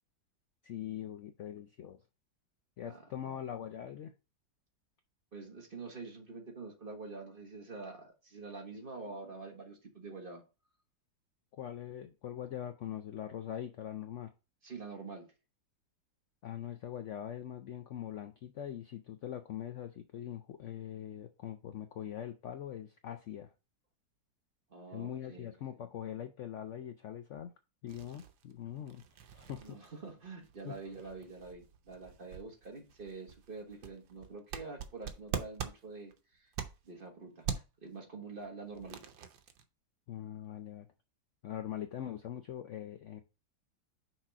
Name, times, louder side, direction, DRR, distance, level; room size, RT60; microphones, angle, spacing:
voice 1, 0.6-2.0 2.8-4.1 11.5-14.3 16.4-23.5 24.9-27.5 27.8-29.0 29.3-29.8 30.6-30.8 40.1-40.9 41.4-43.2, left 10 dB, 85° left, 0.6 m, -42 dB
voice 2, 2.8-3.4 5.3-10.4 14.6-15.3 24.7-25.5 29.6-36.5 36.8-39.1, right 3 dB, 35° right, 1.3 m, -46 dB
sound 1, 27.9-37.1 37.4-37.9 38.4-39.6, right 7 dB, 85° right, 1.5 m, -44 dB
6.1 x 4.1 x 4.9 m
omnidirectional pair, 2.0 m